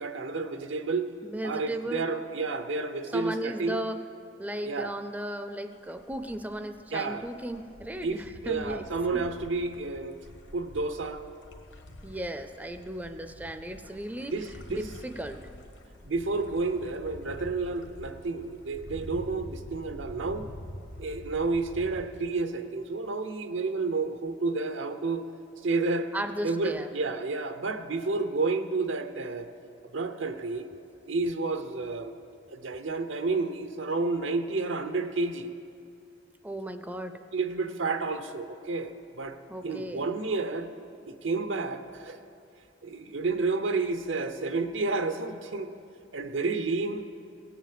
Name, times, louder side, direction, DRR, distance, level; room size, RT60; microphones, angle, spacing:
voice 1, 0.0-1.1 1.4-3.8 4.6-4.9 6.9-7.3 8.0-10.2 10.5-11.2 14.3-14.9 16.0-20.5 21.0-25.2 25.6-26.1 26.4-29.5 29.9-30.7 31.1-32.1 32.5-35.5 37.3-39.4 39.6-40.7 41.1-42.2 42.8-45.7 46.1-47.1, right 3 dB, 85° right, 8 dB, 0.8 m, -30 dB
voice 2, 1.2-2.0 3.1-4.0 4.4-8.8 9.1-9.2 12.0-14.3 14.7-15.5 26.1-26.9 36.4-37.2 39.5-40.1, right 1 dB, 10° right, 8 dB, 0.4 m, -35 dB
sound 1, 5.7-22.0, left 1 dB, 75° left, 1.3 m, -47 dB
18.0 x 7.1 x 7.6 m, 2.5 s
head